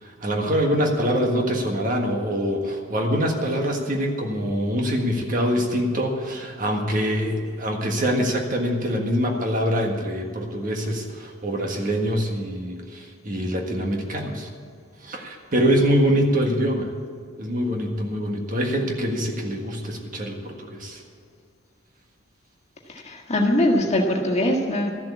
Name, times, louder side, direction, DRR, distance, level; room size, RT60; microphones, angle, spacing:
voice 1, 0.0-14.5 15.0-16.9 17.4-21.0, equal, 40° right, 2 dB, 1.6 m, -24 dB
voice 2, 23.1-24.9, left 1 dB, 30° left, 0 dB, 1.7 m, -21 dB
13.5 x 7.6 x 8.5 m, 2.1 s
head